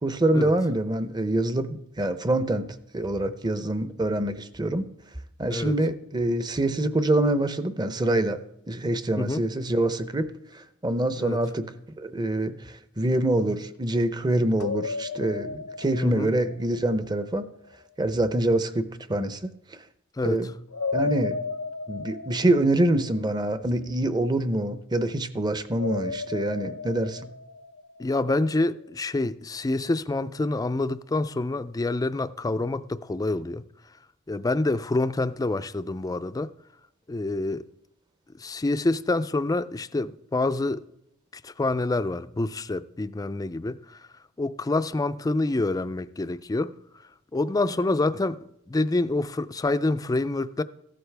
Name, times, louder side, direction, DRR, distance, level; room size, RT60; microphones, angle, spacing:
voice 1, 0.0-2.7 2.9-4.9 5.4-8.4 8.7-10.3 10.8-12.5 13.0-17.5 18.0-19.5 20.2-20.5 20.9-21.4 21.9-27.2, right 1 dB, 20° right, 0.6 m, -25 dB
voice 2, 9.2-9.5 11.2-11.4 16.0-16.3 20.2-20.4 28.0-33.6 34.3-36.5 37.1-37.6 38.4-40.8 41.4-43.8 44.4-46.7 47.3-50.6, left 2 dB, 15° left, 0.4 m, -27 dB
sound 1, 14.6-17.6 20.7-24.0 25.7-28.5, left 4 dB, 85° left, 0.7 m, -34 dB
15.0 x 12.5 x 3.4 m
head